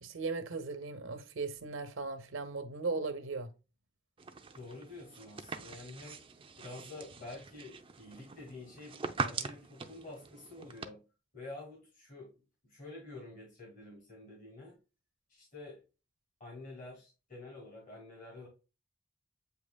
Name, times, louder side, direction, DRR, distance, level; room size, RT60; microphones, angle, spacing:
voice 1, 0.0-3.5, right 3 dB, 75° right, 0.7 m, -37 dB
sound 1, 4.2-10.9, right 4 dB, 25° right, 0.5 m, -42 dB
voice 2, 4.5-6.2 6.6-11.0 11.3-12.3 12.6-14.8 15.3-15.8 16.4-18.5, left 2 dB, 45° left, 2.0 m, -48 dB
8.3 x 2.8 x 2.2 m
head